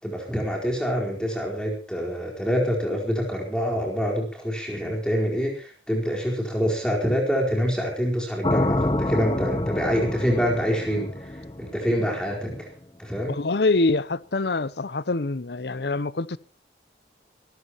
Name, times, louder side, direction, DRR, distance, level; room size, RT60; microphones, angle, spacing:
voice 1, 0.0-12.7 13.0-13.3, equal, 5° left, 4.5 m, -26 dB
sound 1, 8.4-12.5, left 1 dB, 25° left, 0.9 m, -27 dB
voice 2, 13.3-16.4, left 3 dB, 70° left, 0.8 m, -25 dB
23.5 x 14.5 x 3.0 m
head